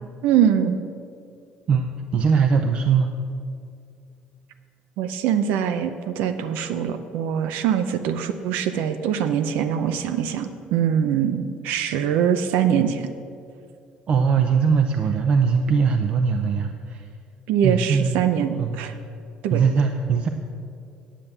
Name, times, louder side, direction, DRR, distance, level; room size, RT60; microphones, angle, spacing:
voice 1, 0.2-0.8 5.0-13.1 17.5-18.9 19.4-19.6, right 8 dB, 90° right, 9 dB, 0.6 m, -23 dB
voice 2, 1.7-3.1 14.1-17.1 17.6-18.2 18.6-19.0 19.5-20.3, right 6 dB, 40° right, 6 dB, 0.5 m, -21 dB
9.9 x 7.3 x 6.7 m, 2.4 s
cardioid pair, 160°, 3 cm